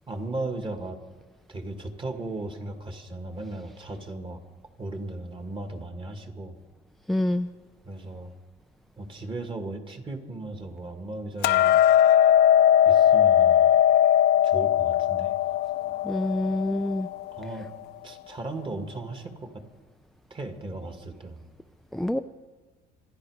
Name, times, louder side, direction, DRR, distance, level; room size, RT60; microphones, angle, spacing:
voice 1, 0.1-1.0 1.5-4.4 4.8-6.6 7.8-8.3 9.0-11.8 12.9-13.7 14.4-15.3 17.3-17.7 18.0-19.6 20.3-21.4, right 2 dB, 30° right, 6 dB, 2.1 m, -36 dB
voice 2, 7.1-7.5 16.0-17.1 21.9-22.2, left 1 dB, ahead, 7 dB, 0.4 m, -26 dB
Hammer, 11.4-17.7, left 10 dB, 75° left, 0.6 m, -20 dB
26.5 x 10.5 x 5.0 m, 1.4 s
cardioid pair, 110°, 17 cm